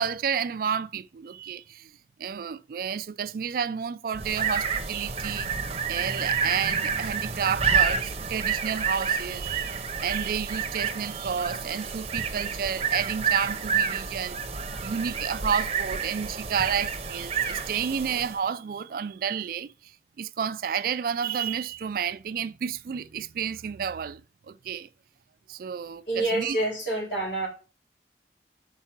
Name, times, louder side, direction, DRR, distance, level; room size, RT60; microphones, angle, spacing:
voice 1, 0.0-1.9 2.2-5.5 5.9-14.4 14.8-19.7 20.2-24.2 24.5-24.9 25.5-26.6, right 7 dB, 50° right, 0.3 m, -31 dB
sound 1, 4.1-18.4, right 6 dB, 35° right, 0.7 m, -29 dB
voice 2, 26.1-27.5, right 2 dB, 85° left, 4.3 m, -27 dB
5.6 x 4.7 x 5.8 m
head